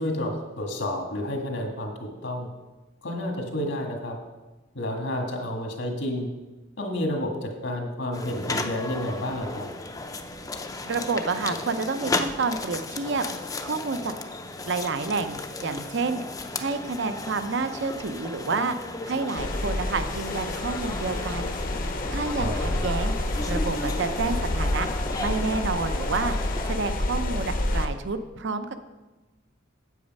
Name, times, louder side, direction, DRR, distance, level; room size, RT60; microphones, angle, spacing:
voice 1, 0.0-2.5 3.0-4.2 4.7-6.3 6.8-9.7 22.4-22.8, left 1 dB, 75° left, 1 dB, 1.8 m, -30 dB
sound 1, 8.1-26.8, left 2 dB, 20° left, 0.5 m, -35 dB
voice 2, 10.8-13.3 13.6-14.1 14.6-16.2 16.6-18.8 19.0-21.5 22.1-23.1 23.5-24.9 25.2-26.3 26.7-28.8, right 4 dB, 65° right, 9 dB, 0.6 m, -29 dB
sound 2, 19.4-27.9, left 1 dB, 45° left, 0.8 m, -28 dB
8.4 x 8.0 x 5.4 m, 1.2 s
head